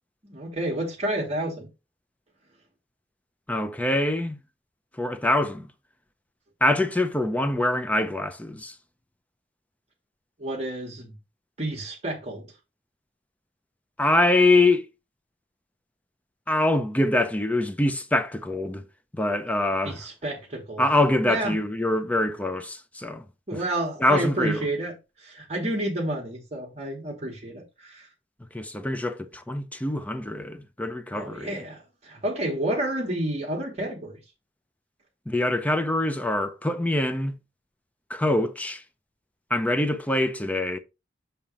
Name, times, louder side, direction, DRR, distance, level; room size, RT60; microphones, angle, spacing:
voice 1, 0.2-1.7 10.4-11.1 11.6-12.5 19.8-20.8 21.3-21.6 23.5-28.1 31.1-34.2, right 1 dB, 35° right, 1.3 m, -30 dB
voice 2, 3.5-4.4 5.0-5.7 6.6-8.7 14.0-14.9 16.5-18.8 19.1-20.0 20.8-23.2 23.5-23.6 24.0-24.7 28.5-31.6 35.3-37.3 38.1-38.8 39.5-40.8, left 2 dB, 10° left, 0.5 m, -24 dB
7.3 x 2.9 x 4.9 m
head